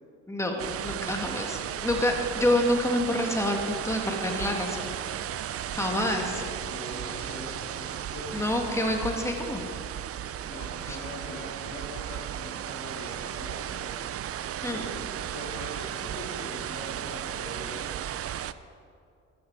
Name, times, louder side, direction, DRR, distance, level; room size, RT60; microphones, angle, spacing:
voice 1, 0.3-4.9 5.7-6.3 8.3-9.6 14.6-14.8, left 1 dB, 10° left, 2 dB, 1.9 m, -27 dB
sound 1, 0.6-18.5, right 10 dB, 50° right, 0.5 m, -35 dB
voice 2, 6.2-8.7 9.5-9.6 10.2-17.8, left 1 dB, 85° left, -4 dB, 3.7 m, -42 dB
14.0 x 12.5 x 4.7 m, 2.5 s
cardioid pair, 90°, 30 cm